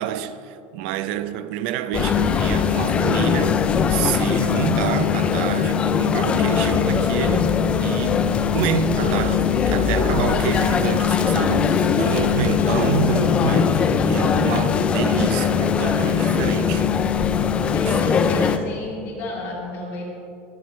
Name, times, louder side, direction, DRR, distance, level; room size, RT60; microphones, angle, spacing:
voice 1, 0.0-7.5 7.8-16.9 17.9-18.0, right 9 dB, 60° right, 0.6 m, -28 dB
sound 1, 1.9-18.6, left 7 dB, 20° left, 0.4 m, -20 dB
voice 2, 17.7-20.0, left 1 dB, 40° left, 2.8 m, -32 dB
22.5 x 11.0 x 3.2 m
cardioid pair, 175°, 6 cm